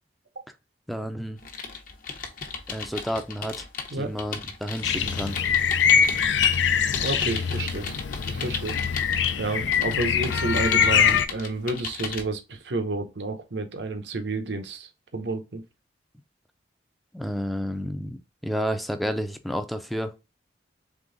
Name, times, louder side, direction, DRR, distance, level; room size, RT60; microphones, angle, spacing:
voice 1, 0.9-1.4 2.7-3.6 3.9-5.4 17.1-20.1, equal, ahead, 0.4 m, -30 dB
sound 1, 1.4-6.6 6.9-9.3 9.7-12.2, left 5 dB, 50° left, 0.8 m, -35 dB
sound 2, 4.8-11.3, left 7 dB, 90° left, 0.4 m, -23 dB
voice 2, 7.0-8.0 8.3-8.8 9.4-15.6, right 2 dB, 75° right, 0.8 m, -30 dB
3.7 x 3.4 x 3.8 m
head